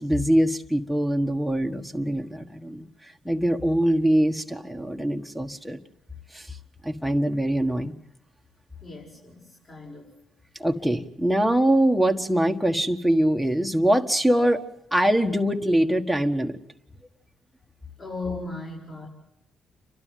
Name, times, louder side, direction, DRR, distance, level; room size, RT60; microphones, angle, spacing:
voice 1, 0.0-2.9 3.2-5.8 6.3-6.6 6.8-7.9 10.6-16.6, right 1 dB, ahead, 6 dB, 1.5 m, -23 dB
voice 2, 8.8-10.1 18.0-19.1, left 3 dB, 40° left, -3 dB, 6.5 m, -36 dB
29.5 x 12.0 x 9.3 m, 0.87 s
cardioid pair, 90°, 0 cm